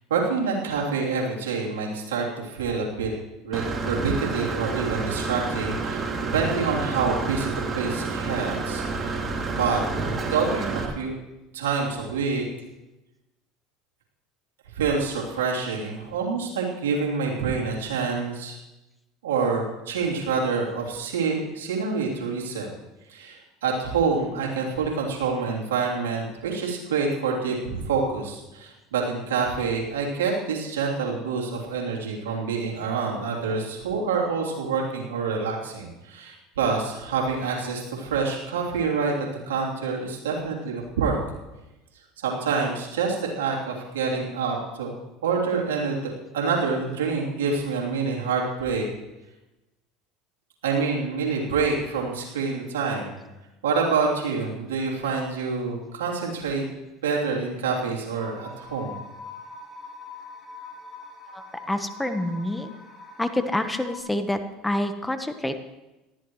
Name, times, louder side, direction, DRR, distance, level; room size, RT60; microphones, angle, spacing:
voice 1, 0.1-3.1 3.4-6.1 6.3-9.8 10.3-11.1 11.5-12.4 14.7-18.6 19.2-22.7 23.1-41.2 42.2-48.9 50.6-53.2 53.6-56.7 57.0-58.9, right 5 dB, 90° right, -3 dB, 3.2 m, -27 dB
Engine / Mechanisms, 3.5-10.9, right 3 dB, 30° right, 2.9 m, -29 dB
sound 1, 58.2-64.0, left 3 dB, 25° left, 4.9 m, -43 dB
voice 2, 61.3-62.7 63.2-64.4 64.6-65.6, left 1 dB, 10° left, 8 dB, 1.2 m, -27 dB
18.5 x 13.5 x 3.2 m, 1.0 s
hypercardioid pair, 85°, 0 cm